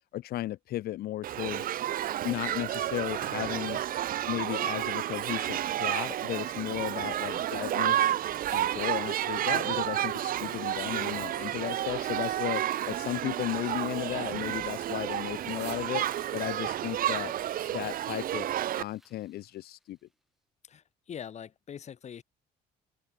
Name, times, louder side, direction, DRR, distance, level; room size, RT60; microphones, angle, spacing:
voice 1, 0.1-1.7 2.2-3.8 4.3-8.1 8.5-16.0 16.3-17.3 17.7-20.0, left 14 dB, 65° left, 0.8 m, -35 dB
Shout / Human group actions, 1.2-18.8, right 12 dB, 55° right, 1.0 m, -31 dB
sound 1, 8.3-12.6 13.3-13.6 13.9-18.5 18.9-19.0, right 19 dB, 85° right, 3.7 m, -52 dB
sound 2, 19.9-20.1, equal, ahead, 5.0 m, -59 dB
voice 2, 20.7-22.2, left 8 dB, 40° left, 1.4 m, -43 dB
cardioid pair, 110°, 17 cm